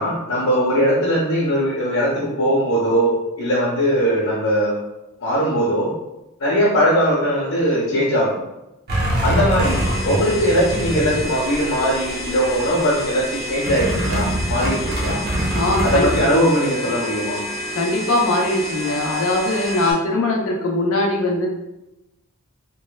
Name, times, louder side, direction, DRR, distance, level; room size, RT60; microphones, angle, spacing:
voice 1, 0.0-3.1 3.4-4.8 5.2-5.9 6.4-8.4 9.2-15.2 15.8-17.4, equal, 90° left, -9 dB, 0.9 m, -20 dB
sound 1, 8.9-11.9 12.2-12.8 13.7-16.2, right 1 dB, 45° right, 0.6 m, -23 dB
sound 2, 9.6-19.9, equal, 15° left, 0.6 m, -30 dB
voice 2, 15.5-16.1 17.7-21.5, left 2 dB, 65° left, -1 dB, 0.6 m, -21 dB
3.0 x 2.1 x 2.2 m, 0.95 s
head